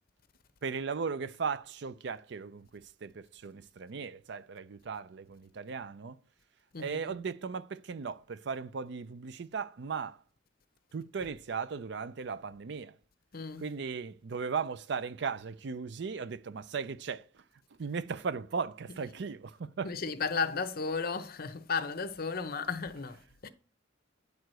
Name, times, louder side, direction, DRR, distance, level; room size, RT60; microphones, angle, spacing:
voice 1, 0.6-6.2 6.8-10.2 10.9-13.0 13.6-17.4 17.8-19.9, right 5 dB, 65° right, 0.5 m, -37 dB
voice 2, 13.3-13.7 19.8-23.5, left 5 dB, 50° left, 0.8 m, -34 dB
9.3 x 4.7 x 7.6 m
head